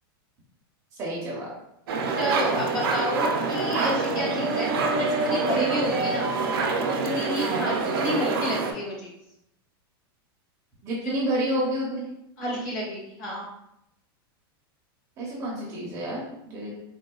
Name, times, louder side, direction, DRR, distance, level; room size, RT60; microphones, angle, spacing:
voice 1, 1.0-1.5 7.4-7.7 10.8-12.0 15.2-16.7, right 1 dB, 25° right, -4 dB, 0.7 m, -29 dB
sound 1, 1.9-8.7, right 3 dB, 70° right, 0.5 m, -26 dB
voice 2, 2.1-6.3 6.8-9.1 11.0-11.1 12.4-13.4, equal, 50° left, -5 dB, 1.4 m, -30 dB
3.7 x 2.2 x 2.3 m, 0.81 s
supercardioid pair, 165°, 13 cm